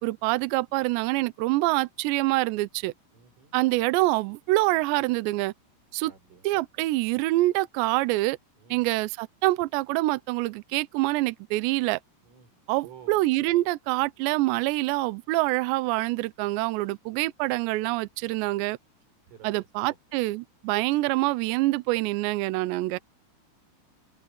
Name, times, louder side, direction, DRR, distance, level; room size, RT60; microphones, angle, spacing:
voice 1, 0.0-2.9 3.5-5.5 5.9-6.1 6.4-8.4 8.7-12.0 12.7-18.8 19.4-23.0, right 19 dB, 90° right, 2.5 m, -26 dB
voice 2, 3.1-3.6 6.0-6.6 8.6-8.9 12.2-12.5 12.8-13.2 19.3-20.0, right 8 dB, 75° right, 9.2 m, -51 dB
open air
omnidirectional pair, 6.0 m